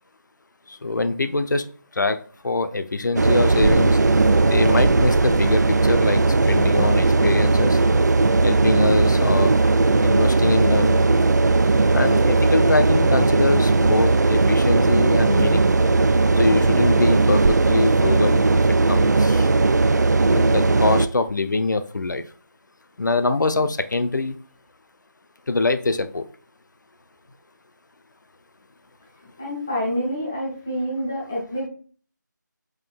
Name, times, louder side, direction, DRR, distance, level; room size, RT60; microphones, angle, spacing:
voice 1, 0.7-1.6 2.0-2.2 2.4-4.0 4.5-7.8 8.4-9.5 10.0-11.1 11.9-15.6 16.4-19.5 20.3-22.2 23.0-24.4 25.5-26.3, left 3 dB, 70° left, 10 dB, 0.6 m, -23 dB
sound 1, 3.2-21.1, right 3 dB, 60° right, 0.4 m, -18 dB
voice 2, 29.4-31.7, equal, 10° left, -5 dB, 0.5 m, -27 dB
5.5 x 3.7 x 2.2 m, 0.42 s
figure-of-eight pair, 175°, 10 cm